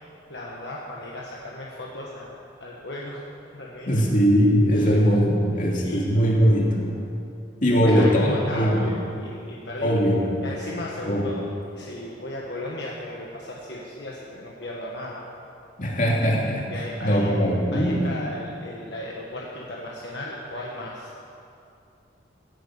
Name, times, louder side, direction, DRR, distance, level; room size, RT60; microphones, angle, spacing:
voice 1, 0.3-2.3 2.6-3.2 3.5-4.0 4.7-4.9 5.8-6.2 7.7-10.0 10.4-11.4 11.7-15.2 16.7-21.2, left 1 dB, 65° left, -3 dB, 1.5 m, -35 dB
voice 2, 3.9-6.9 7.6-8.8 9.8-10.3 11.1-11.2 15.8-16.7 17.0-18.0, equal, 45° left, -2 dB, 2.7 m, -20 dB
15.5 x 9.5 x 7.9 m, 2.6 s
head